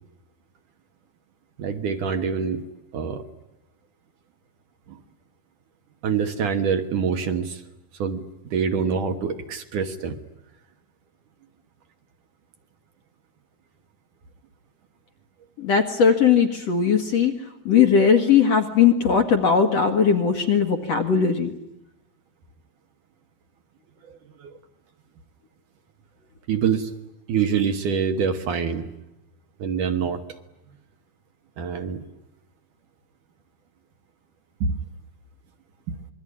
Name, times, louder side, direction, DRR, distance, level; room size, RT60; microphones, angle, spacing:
voice 1, 1.6-2.7 2.9-3.2 4.9-5.0 6.0-7.6 8.0-10.2 24.1-24.6 26.5-26.9 27.3-28.9 29.6-30.2 31.6-32.1 34.6-34.8 35.9-36.0, right 6 dB, 60° right, 6 dB, 2.6 m, -25 dB
voice 2, 15.6-17.3 17.7-21.5, left 6 dB, 55° left, 5 dB, 2.2 m, -19 dB
27.0 x 22.5 x 9.9 m, 0.90 s
omnidirectional pair, 4.6 m